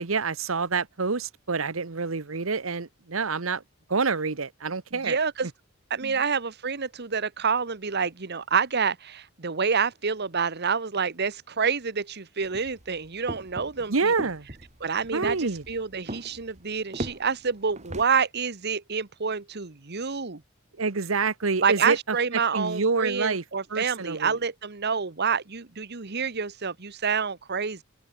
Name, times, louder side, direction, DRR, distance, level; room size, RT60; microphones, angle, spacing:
voice 1, 0.0-3.6 3.9-5.2 6.0-6.1 13.9-14.5 15.1-15.6 20.8-22.0 22.5-23.4 23.7-24.3, right 4 dB, 80° right, 1.1 m, -27 dB
voice 2, 4.9-5.5 5.9-14.1 14.8-20.4 21.6-27.8, right 5 dB, 55° right, 1.3 m, -28 dB
sound 1, 12.4-18.0, right 1 dB, 35° right, 3.5 m, -39 dB
open air
head